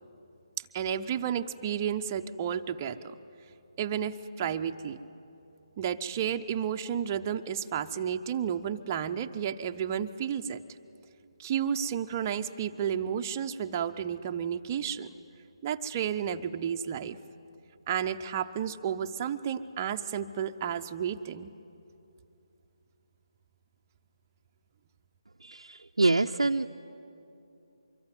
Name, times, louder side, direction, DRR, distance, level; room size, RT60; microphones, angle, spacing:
voice 1, 0.6-3.2 3.8-5.0 5.8-10.6 11.4-15.1 15.6-17.2 17.9-21.5, right 8 dB, 25° right, 6 dB, 0.7 m, -32 dB
voice 2, 25.4-26.7, right 3 dB, 70° right, 4 dB, 0.6 m, -26 dB
24.5 x 24.0 x 9.4 m, 2.8 s
figure-of-eight pair, 150°, 3 cm